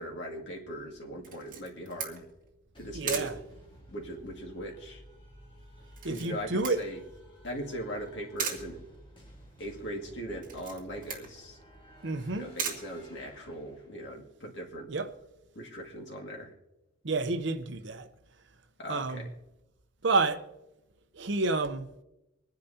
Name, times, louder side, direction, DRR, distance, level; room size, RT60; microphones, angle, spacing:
voice 1, 0.0-2.3 2.8-3.3 3.9-5.0 6.1-7.0 7.4-8.8 9.6-11.6 12.3-14.9 15.6-16.5 18.8-19.3, equal, 60° left, 2.1 m, -39 dB
Camera, 1.2-13.7, right 6 dB, 40° right, 1.9 m, -41 dB
sound 1, 2.7-14.1, equal, 25° left, 1.6 m, -53 dB
voice 2, 2.9-3.3 6.0-6.8 12.0-12.5 14.9-15.1 17.0-18.1 18.9-19.3 20.0-20.4 21.1-21.9, right 3 dB, 60° right, 0.7 m, -29 dB
25.5 x 10.5 x 2.8 m
head